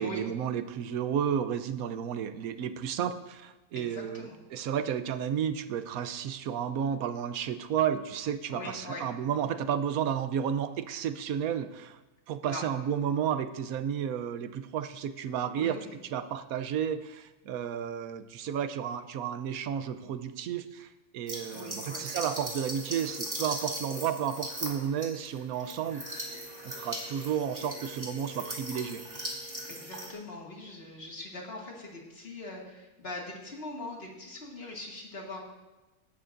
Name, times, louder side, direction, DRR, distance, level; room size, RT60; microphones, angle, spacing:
voice 1, 0.0-12.0 12.3-15.8 16.1-26.0 26.6-29.0, right 8 dB, 80° right, 11 dB, 1.1 m, -32 dB
voice 2, 3.7-4.4 8.5-9.0 12.4-12.7 15.6-16.0 21.5-22.0 29.7-35.4, left 2 dB, 45° left, -2 dB, 2.2 m, -42 dB
sound 1, 21.3-30.1, right 1 dB, 20° right, 2.4 m, -39 dB
17.5 x 11.0 x 2.6 m, 1.1 s
omnidirectional pair, 1.5 m